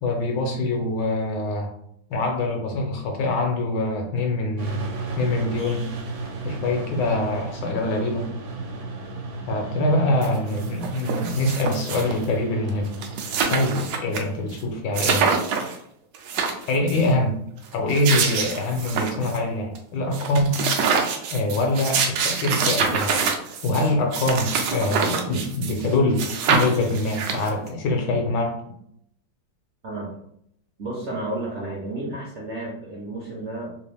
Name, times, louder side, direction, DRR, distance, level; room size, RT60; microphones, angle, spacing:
voice 1, 0.0-1.7 2.1-5.9 6.4-8.3 9.5-12.9 13.5-15.3 16.7-17.4 17.7-20.6 21.3-23.2 23.6-28.6, left 2 dB, 70° left, 2 dB, 1.3 m, -24 dB
sound 1, 4.6-15.0, right 3 dB, 90° right, 1.5 m, -34 dB
sound 2, 10.2-10.3 10.6-12.3 12.7-12.8 12.9-14.2 14.5-14.6 15.0-15.8 16.1-17.0 17.7-19.4 19.8-19.9 20.1-25.9 26.2-27.7, right 5 dB, 75° right, 1.1 m, -25 dB
voice 2, 30.8-33.8, right 2 dB, 60° right, -4 dB, 0.7 m, -32 dB
3.5 x 2.5 x 3.4 m, 0.71 s
omnidirectional pair, 2.1 m